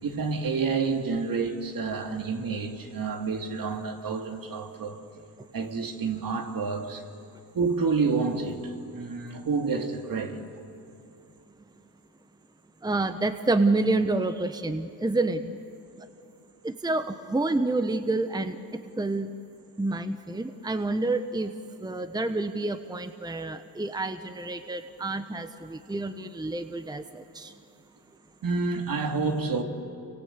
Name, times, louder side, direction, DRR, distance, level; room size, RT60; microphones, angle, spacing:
voice 1, 0.0-5.0 5.5-7.0 7.5-10.4 28.4-29.6, right 4 dB, 60° right, 2.9 m, -29 dB
voice 2, 12.8-15.4 16.6-18.6 19.0-19.3 19.8-21.5 21.8-27.5, right 2 dB, 10° right, 1.1 m, -28 dB
29.5 x 24.5 x 8.2 m
cardioid pair, 85°, 39 cm